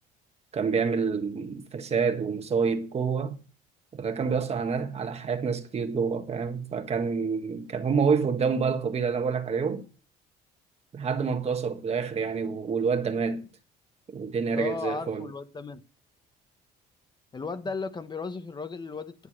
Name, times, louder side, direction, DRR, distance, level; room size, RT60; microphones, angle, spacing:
voice 1, 0.5-3.4 3.9-9.8 10.9-13.5 14.1-15.3, right 5 dB, 40° right, 1.6 m, -27 dB
voice 2, 14.5-15.8 17.3-19.1, left 4 dB, 25° left, 1.0 m, -35 dB
9.9 x 8.2 x 6.2 m
cardioid pair, 110°, 17 cm